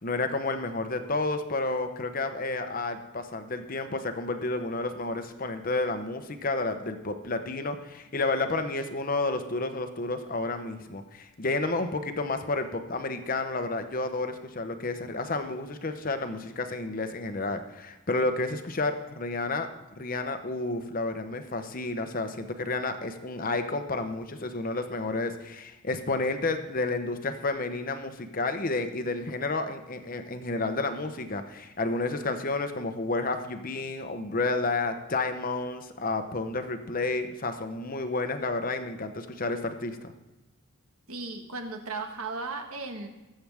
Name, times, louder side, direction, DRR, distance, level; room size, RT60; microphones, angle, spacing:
voice 1, 0.0-19.7 20.0-40.1, left 3 dB, 40° left, 8 dB, 0.9 m, -31 dB
voice 2, 41.1-43.1, right 3 dB, 85° right, 4 dB, 1.5 m, -36 dB
20.5 x 7.8 x 3.5 m, 1.0 s
head